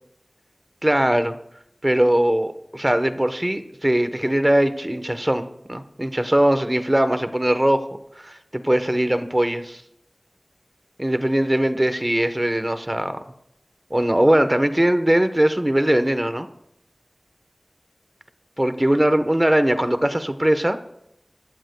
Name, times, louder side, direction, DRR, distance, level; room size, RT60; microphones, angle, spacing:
voice 1, 0.8-1.4 1.8-7.8 8.2-9.8 11.0-13.2 13.9-16.5 18.6-20.8, right 1 dB, 25° right, 9 dB, 1.1 m, -20 dB
25.0 x 14.5 x 2.3 m, 0.78 s
wide cardioid pair, 45°, 0 cm